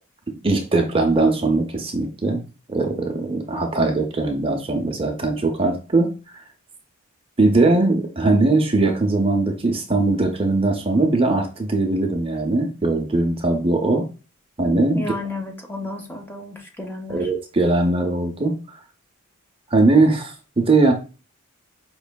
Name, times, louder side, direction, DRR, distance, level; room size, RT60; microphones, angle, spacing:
voice 1, 0.4-2.4 2.7-6.4 7.4-14.1 14.6-15.0 17.1-18.6 19.7-20.9, right 2 dB, 25° right, 3 dB, 0.6 m, -20 dB
voice 2, 14.9-17.3, left 2 dB, 10° left, 2 dB, 0.7 m, -32 dB
5.1 x 3.1 x 2.2 m, 0.33 s
head